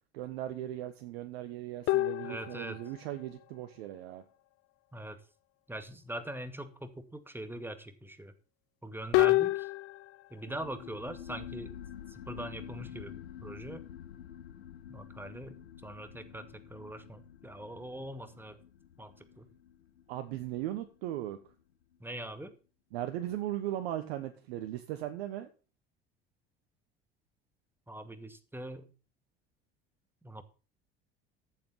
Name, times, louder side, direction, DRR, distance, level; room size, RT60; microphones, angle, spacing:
voice 1, 0.1-4.2 20.1-21.4 22.9-25.5, right 13 dB, 70° right, 8 dB, 1.3 m, -38 dB
sound 1, 1.9-3.1 9.1-10.2, left 18 dB, 45° left, 0.5 m, -28 dB
voice 2, 2.2-2.8 4.9-5.2 5.7-8.3 8.8-9.7 10.3-11.7 12.1-13.8 14.9-18.6 19.0-19.5 22.0-22.5 27.9-28.9 30.2-30.4, right 1 dB, 5° right, 10 dB, 2.2 m, -42 dB
sound 2, 10.5-21.6, left 9 dB, 85° left, 1.2 m, -48 dB
13.5 x 8.0 x 5.7 m, 0.36 s
hypercardioid pair, 70°, 31 cm